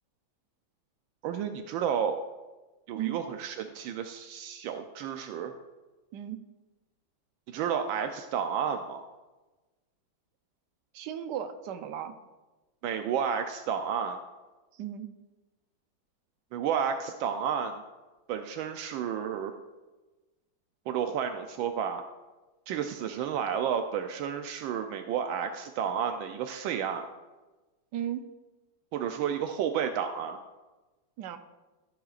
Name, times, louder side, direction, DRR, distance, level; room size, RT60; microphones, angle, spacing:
voice 1, 1.2-2.2 2.9-5.5 7.5-9.1 12.8-14.2 16.5-17.8 18.3-19.5 20.9-22.0 22.7-27.1 28.9-30.4, right 8 dB, 85° right, 6 dB, 1.4 m, -31 dB
voice 2, 10.9-12.1 14.7-15.1 27.9-28.3 31.2-31.4, right 10 dB, 70° right, 8 dB, 1.2 m, -35 dB
13.5 x 10.0 x 2.4 m, 1.1 s
omnidirectional pair, 2.1 m